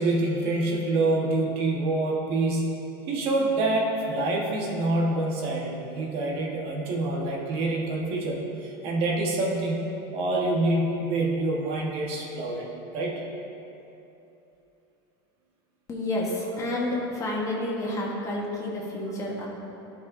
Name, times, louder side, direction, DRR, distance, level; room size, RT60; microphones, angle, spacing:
voice 1, 0.0-2.8 3.1-12.7 12.9-13.2, right 2 dB, 50° right, -2 dB, 1.3 m, -26 dB
voice 2, 15.9-19.5, left 1 dB, 25° left, -2 dB, 1.3 m, -29 dB
12.5 x 5.8 x 2.6 m, 3.0 s
supercardioid pair, 135°, 13 cm